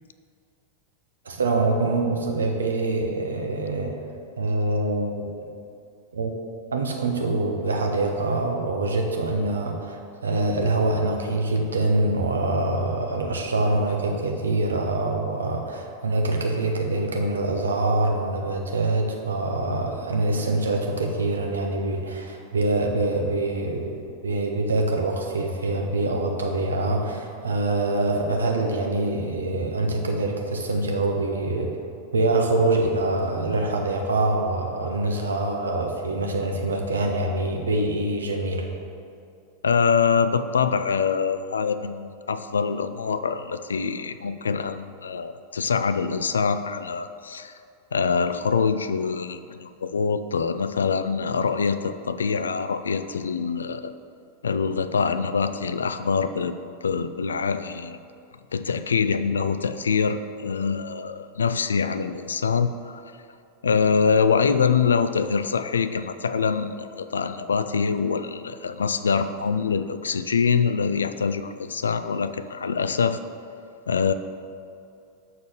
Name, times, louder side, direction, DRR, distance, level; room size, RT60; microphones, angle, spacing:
voice 1, 1.2-3.9 4.4-5.3 6.1-6.3 6.7-31.7 32.1-38.7, right 2 dB, 70° right, 2 dB, 1.0 m, -25 dB
voice 2, 39.6-47.5 47.9-53.9 54.4-56.6 56.8-58.0 58.5-63.0 63.6-73.2 73.9-74.1, left 5 dB, 70° left, 11 dB, 0.3 m, -24 dB
6.7 x 4.2 x 6.6 m, 2.4 s
figure-of-eight pair, 90°, 0 cm